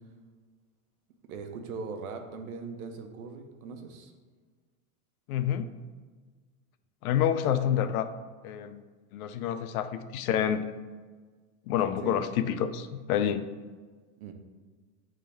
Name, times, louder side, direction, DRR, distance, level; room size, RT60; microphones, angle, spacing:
voice 1, 1.3-4.1 7.6-7.9 12.0-12.2 14.2-14.3, right 5 dB, 75° right, 5 dB, 1.0 m, -40 dB
voice 2, 5.3-5.7 7.0-8.1 8.4-8.8 9.1-10.7 11.7-13.5, left 9 dB, 75° left, 10 dB, 0.6 m, -28 dB
8.6 x 3.7 x 3.5 m, 1.5 s
supercardioid pair, 165°, 43 cm